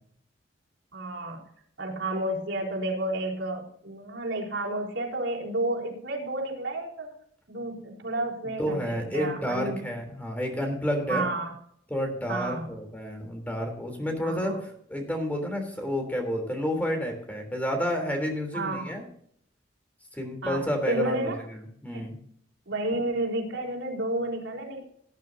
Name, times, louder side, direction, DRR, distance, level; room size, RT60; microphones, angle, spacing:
voice 1, 0.9-1.4 1.8-7.1 7.5-9.8 11.1-11.5 12.3-12.7 14.2-14.6 18.5-19.0 20.4-21.4 21.9-22.1 22.7-24.8, right 2 dB, 90° right, -4 dB, 4.2 m, -31 dB
voice 2, 8.4-11.3 11.9-19.0 20.1-22.2, equal, 10° left, 3 dB, 3.3 m, -30 dB
18.5 x 10.5 x 2.7 m, 0.67 s
head